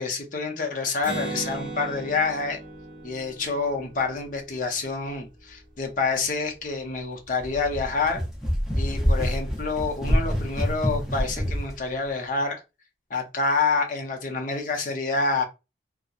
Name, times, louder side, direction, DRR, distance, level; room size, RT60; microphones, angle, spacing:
voice 1, 0.0-2.6 3.0-8.2 8.8-12.6 13.1-15.4, left 4 dB, 45° left, 3 dB, 0.5 m, -27 dB
Acoustic guitar, 1.0-4.7, right 2 dB, 45° right, 1.3 m, -36 dB
sound 1, 7.4-11.7, equal, 5° right, 0.5 m, -26 dB
2.7 x 2.0 x 2.3 m, 0.27 s
head